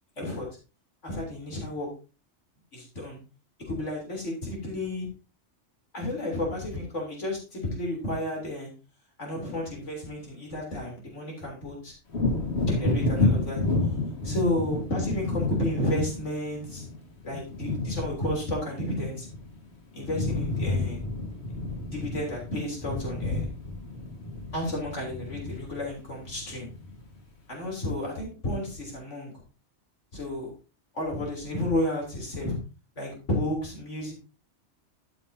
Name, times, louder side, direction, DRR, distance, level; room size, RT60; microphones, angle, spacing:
voice 1, 0.2-0.5 1.0-1.9 2.7-3.2 3.7-5.1 5.9-8.7 9.2-11.9 12.7-13.6 14.2-16.8 17.2-19.3 19.9-21.1 21.9-23.5 24.5-26.7 27.5-29.4 30.1-30.5 30.9-32.6 33.0-34.1, left 1 dB, 85° left, -1 dB, 3.6 m, -31 dB
Wind / Thunder, 12.1-19.7 19.9-27.2 27.6-27.8, left 2 dB, 65° left, 2.0 m, -30 dB
13.5 x 6.9 x 2.7 m, 0.32 s
omnidirectional pair, 1.2 m